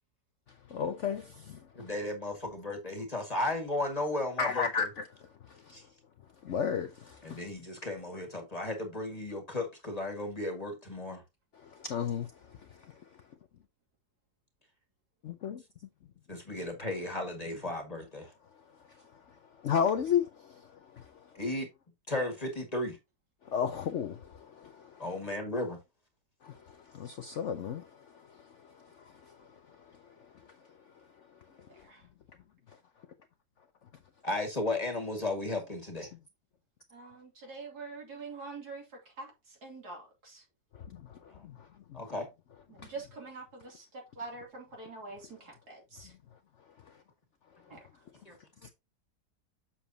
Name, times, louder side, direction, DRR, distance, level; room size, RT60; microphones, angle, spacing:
voice 1, 0.7-1.9 4.4-5.8 6.4-7.4 11.5-13.1 15.2-15.6 18.9-21.3 23.4-25.1 26.4-30.6 31.6-31.9 36.1-36.2 40.7-42.0 42.8-42.9 46.8-47.0 48.6-48.7, left 7 dB, 60° left, 0.8 m, -35 dB
voice 2, 1.7-4.9 5.7-5.8 7.2-11.2 16.3-18.3 21.4-21.7 22.1-23.0 25.0-25.8 34.2-36.1 41.3-41.4 41.9-42.3 48.3-48.4, left 2 dB, 20° left, 1.8 m, -35 dB
voice 3, 31.7-32.0 36.9-38.9 39.2-40.4 42.7-46.1 47.7-47.8, right 3 dB, 65° right, 3.2 m, -45 dB
7.3 x 7.0 x 2.7 m
omnidirectional pair, 1.9 m